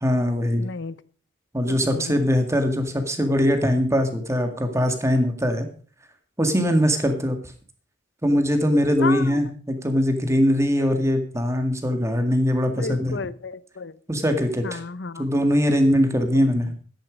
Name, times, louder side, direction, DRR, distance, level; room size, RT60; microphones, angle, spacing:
voice 1, 0.0-0.7 1.5-5.7 6.4-7.4 8.2-13.2 14.1-14.8 15.2-16.7, equal, 15° right, 6 dB, 2.0 m, -21 dB
voice 2, 0.6-1.0 1.7-2.2 9.0-9.4 12.8-14.0 14.6-15.2, left 4 dB, 65° left, 17 dB, 0.8 m, -32 dB
13.0 x 10.5 x 5.1 m, 0.42 s
head